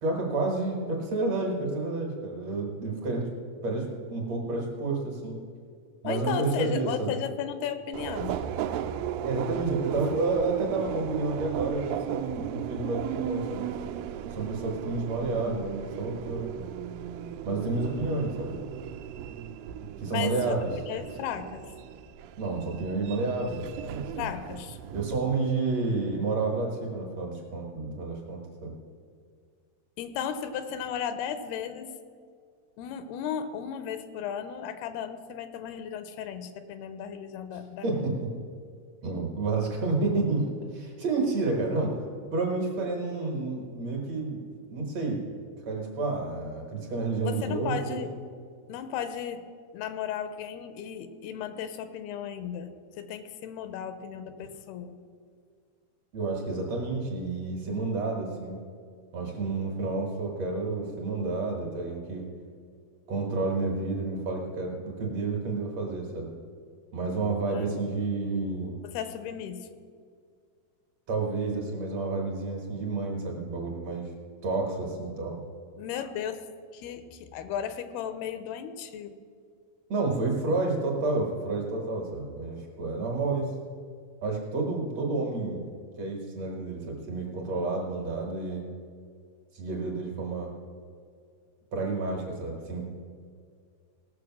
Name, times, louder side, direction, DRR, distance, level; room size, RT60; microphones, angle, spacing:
voice 1, 0.0-3.3 3.6-5.4 6.0-7.2 9.2-13.6 14.3-15.7 16.0-16.5 17.4-18.6 20.0-20.7 22.4-24.3 24.9-28.7 37.8-38.3 39.0-40.5 40.7-42.0 42.3-44.4 44.7-45.2 45.6-48.0 56.1-58.6 59.1-62.3 63.1-66.3 66.9-68.8 71.1-74.1 74.4-75.4 79.9-83.5 84.2-85.6 86.0-88.7 89.5-90.5 91.7-92.9, right 3 dB, 55° right, 0 dB, 2.1 m, -30 dB
voice 2, 6.0-8.4 20.0-20.6 20.9-21.7 24.2-24.8 30.0-31.9 32.8-38.2 47.2-48.2 48.7-55.0 67.5-67.7 68.8-69.7 75.8-76.5 76.7-79.2, left 8 dB, 85° left, 11 dB, 2.7 m, -35 dB
Subway metro underground, 7.9-25.2, right 10 dB, 80° right, 2.0 m, -36 dB
17.5 x 6.6 x 6.0 m, 2.1 s
omnidirectional pair, 4.5 m